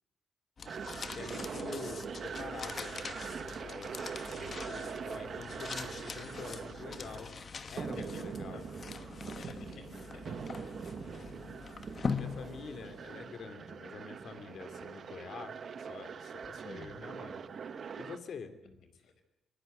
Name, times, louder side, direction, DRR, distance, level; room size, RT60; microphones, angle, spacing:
sound 1, 0.6-13.1, left 5 dB, 45° left, 1.2 m, -43 dB
sound 2, 0.7-18.2, right 6 dB, 55° right, 1.4 m, -43 dB
voice 1, 1.1-4.0 4.3-7.3 7.7-8.7 12.1-17.4 18.0-18.6, left 5 dB, 65° left, 9 dB, 2.7 m, -47 dB
voice 2, 7.9-8.6 9.3-10.8 18.9-19.1, left 4 dB, 85° left, 8 dB, 4.8 m, -52 dB
24.5 x 18.5 x 7.9 m, 0.88 s
cardioid pair, 105°, 0 cm